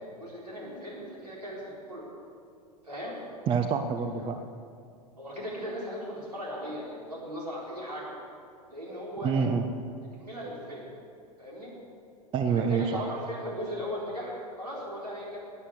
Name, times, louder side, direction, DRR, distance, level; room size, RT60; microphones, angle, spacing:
voice 1, 0.2-2.0 2.8-3.1 4.2-4.3 5.2-8.1 8.7-9.3 10.2-10.9 11.4-11.7 12.5-15.4, equal, 80° right, -5 dB, 4.3 m, -37 dB
voice 2, 3.5-4.4 9.2-9.7 12.3-13.1, right 6 dB, 25° right, 7 dB, 0.7 m, -27 dB
12.5 x 9.8 x 8.1 m, 2.4 s
figure-of-eight pair, 90°, 20 cm